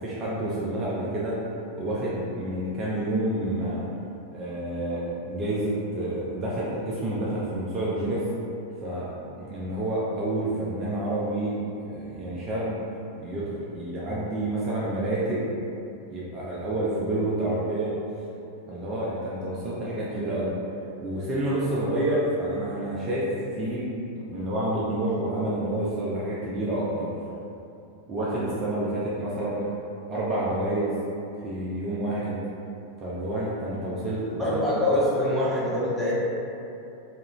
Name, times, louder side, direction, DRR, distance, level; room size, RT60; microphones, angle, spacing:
voice 1, 0.0-1.4 1.8-3.8 4.3-8.2 8.8-9.1 9.4-11.6 11.9-12.8 13.2-15.5 16.1-17.9 18.7-20.5 21.0-23.3 23.5-23.8 24.1-27.1 28.1-29.7 30.1-31.0 31.4-32.4 33.0-34.6, right 1 dB, 30° right, -7 dB, 0.5 m, -28 dB
voice 2, 34.4-36.1, left 1 dB, ahead, -9 dB, 0.7 m, -24 dB
2.8 x 2.4 x 3.0 m, 2.7 s
figure-of-eight pair, 90°, 0 cm